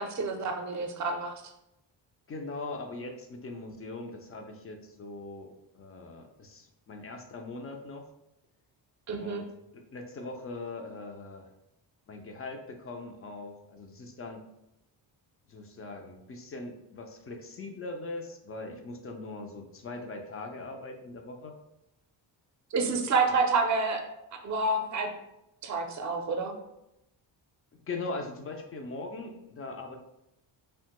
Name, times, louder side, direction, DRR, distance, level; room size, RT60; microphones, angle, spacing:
voice 1, 0.0-1.3 9.1-9.4 22.7-24.0 24.4-25.1 25.6-26.5, right 3 dB, 40° right, 4 dB, 0.5 m, -28 dB
voice 2, 2.3-8.1 9.2-9.5 9.7-11.5 12.1-14.5 15.5-21.6 23.3-23.4 27.9-30.0, left 3 dB, 35° left, 4 dB, 0.4 m, -41 dB
2.8 x 2.2 x 2.8 m, 0.86 s
cardioid pair, 105°, 45 cm